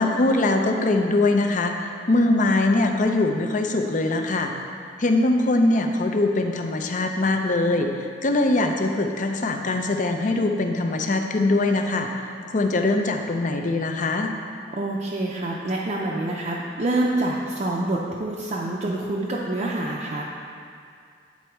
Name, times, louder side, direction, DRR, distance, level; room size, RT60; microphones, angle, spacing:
voice 1, 0.0-1.7 2.1-4.5 5.0-7.9 8.2-12.1 12.5-14.3, left 2 dB, 45° left, 4 dB, 0.5 m, -22 dB
voice 2, 14.7-20.2, right 2 dB, 40° right, -5 dB, 0.5 m, -26 dB
9.5 x 4.2 x 4.5 m, 2.3 s
head